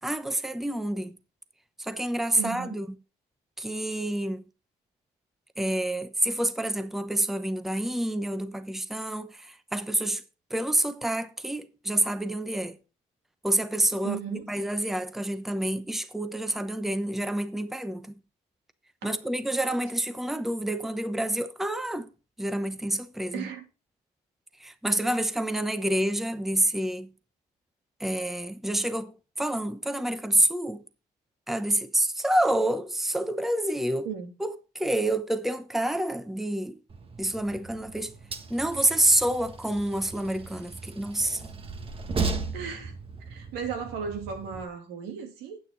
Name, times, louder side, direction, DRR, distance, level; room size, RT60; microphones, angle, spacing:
voice 1, 0.0-1.2 1.8-3.0 3.6-4.4 5.6-10.2 10.5-12.8 13.4-18.1 19.0-22.1 22.4-23.5 24.6-27.1 28.0-30.8 31.5-34.1 34.4-36.8 37.2-38.2 38.5-41.5, right 1 dB, ahead, 0.8 m, -28 dB
voice 2, 2.4-2.7 14.0-14.5 19.0-19.1 23.3-23.6 34.0-34.3 42.5-42.9 43.2-45.6, right 7 dB, 85° right, 2.9 m, -35 dB
Train, 36.9-44.6, right 4 dB, 35° right, 1.6 m, -37 dB
9.7 x 8.7 x 3.8 m
cardioid pair, 110°, 17 cm